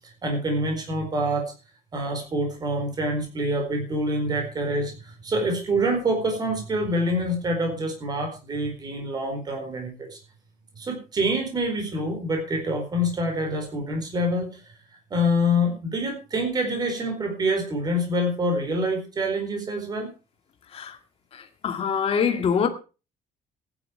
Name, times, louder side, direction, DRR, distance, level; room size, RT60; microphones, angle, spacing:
voice 1, 0.2-1.5 1.9-10.2 10.8-14.6 15.1-20.1, equal, 25° right, 4.4 m, -26 dB
voice 2, 21.6-22.7, left 7 dB, 40° left, 2.0 m, -23 dB
15.0 x 10.5 x 4.5 m
cardioid pair, 175°, 15 cm